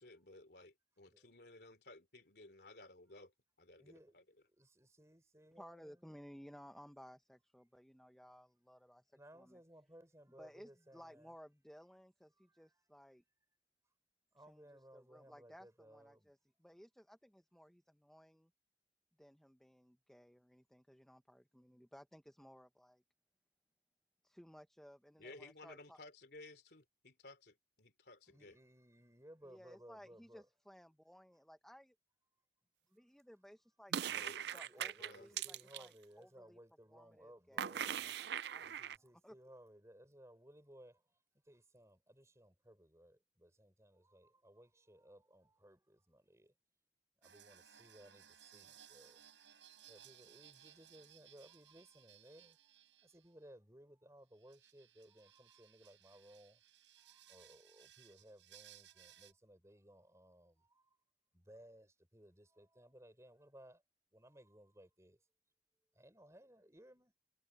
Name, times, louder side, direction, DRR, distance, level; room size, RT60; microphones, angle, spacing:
voice 1, 0.0-3.3 3.6-4.2 25.2-28.5 34.2-34.5 35.0-35.4, left 2 dB, 60° left, 3.4 m, -57 dB
voice 2, 3.8-4.2 4.4-6.1 9.1-11.3 12.4-12.9 14.3-16.3 28.3-30.5 34.0-34.3 34.6-46.5 47.2-56.6 57.0-61.0 61.3-63.8 64.1-65.3 65.9-67.1, right 1 dB, 15° right, 5.0 m, -61 dB
voice 3, 5.6-9.6 10.4-13.2 14.5-18.5 19.2-23.0 24.2-26.0 29.5-32.0 32.9-34.2 34.5-36.6 36.9-38.8 39.2-39.4, equal, 5° left, 0.9 m, -59 dB
sound 1, 33.9-35.9 37.6-39.0, right 9 dB, 65° right, 0.4 m, -40 dB
sound 2, 47.2-53.3 54.3-59.3, right 10 dB, 85° right, 6.8 m, -62 dB
head